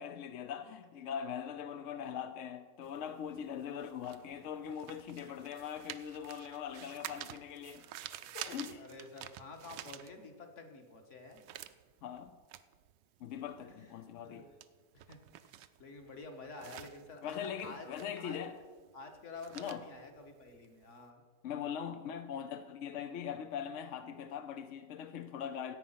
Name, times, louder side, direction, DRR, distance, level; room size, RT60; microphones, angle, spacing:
voice 1, 0.0-7.8 8.3-8.9 12.0-12.3 13.2-14.4 17.2-18.6 19.5-19.8 21.4-25.8, left 8 dB, 70° left, 0.7 m, -41 dB
sound 1, 2.8-10.6 10.9-21.0, right 12 dB, 75° right, 1.2 m, -50 dB
voice 2, 7.9-8.3 8.7-11.4 13.8-13.9 14.2-14.4 14.9-17.9 18.2-18.4 18.9-21.2, left 3 dB, 45° left, 1.6 m, -50 dB
14.5 x 8.6 x 5.6 m
omnidirectional pair, 1.9 m